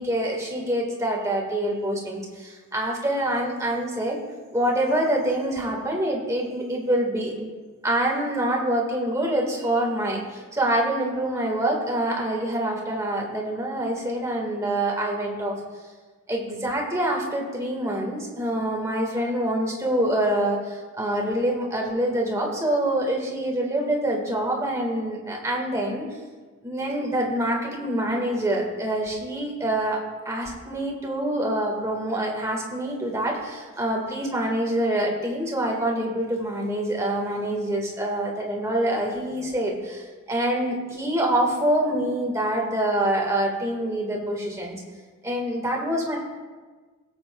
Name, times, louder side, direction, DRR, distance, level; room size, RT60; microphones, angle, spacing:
voice 1, 0.0-4.2 4.5-7.5 7.8-15.6 16.3-26.0 26.6-44.8 45.2-46.2, right 1 dB, 15° right, -1 dB, 1.7 m, -26 dB
18.5 x 7.9 x 2.3 m, 1.4 s
head